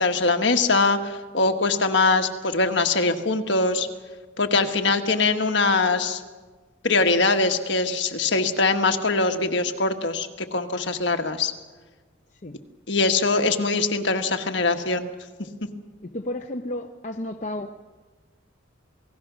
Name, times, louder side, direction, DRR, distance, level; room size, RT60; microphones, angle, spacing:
voice 1, 0.0-3.9 4.4-6.2 6.8-11.5 12.9-15.1, left 3 dB, 60° left, 5 dB, 1.6 m, -22 dB
voice 2, 16.0-17.7, left 1 dB, 35° left, 3 dB, 0.7 m, -32 dB
28.0 x 18.5 x 6.2 m, 1.3 s
head